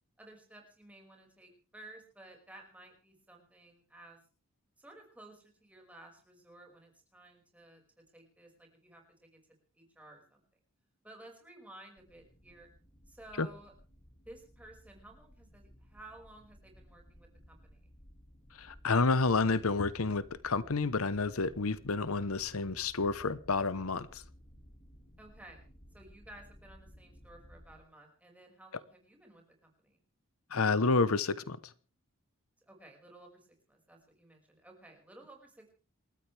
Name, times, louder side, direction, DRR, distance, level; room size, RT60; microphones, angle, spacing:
voice 1, 0.2-4.2 4.8-7.8 8.1-9.4 9.8-10.4 11.0-12.7 13.1-13.7 14.3-17.9 25.2-25.7 25.9-30.0 32.7-35.7, right 1 dB, 5° right, 1 dB, 5.5 m, -55 dB
sound 1, 12.0-27.8, equal, 35° left, 3.1 m, -57 dB
voice 2, 18.6-24.2 30.5-31.6, left 3 dB, 80° left, 16 dB, 1.0 m, -29 dB
28.5 x 13.5 x 3.4 m, 0.39 s
head